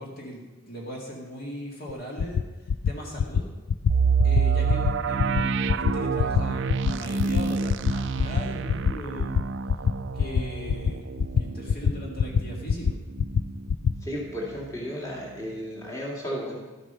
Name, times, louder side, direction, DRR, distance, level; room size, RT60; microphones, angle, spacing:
voice 1, 0.0-2.4 2.9-3.5 4.2-9.5 10.1-12.9, equal, 45° left, -2 dB, 2.1 m, -39 dB
sound 1, 1.9-2.0 2.2-2.4 2.7-2.9 3.2-3.4 3.7-3.9 4.2-4.4 4.7-4.9 5.2-5.4 5.7-5.9 6.2-6.4 6.7-6.9 7.2-7.4 7.7-7.9 8.2-8.4 8.7-8.9 9.2-9.4 9.7-9.9 10.2-10.4 10.7-10.9 11.2-11.4 11.7-11.9 12.2-12.4 12.7-12.9 13.2-13.4 13.7-13.9, left 7 dB, 70° left, 0.4 m, -23 dB
sound 2, 3.9-13.6 14.0-14.1 14.6-14.8, right 5 dB, 60° right, 0.4 m, -28 dB
voice 2, 14.0-16.6, equal, 15° left, -4 dB, 2.2 m, -34 dB
12.5 x 8.0 x 5.6 m, 1.2 s
head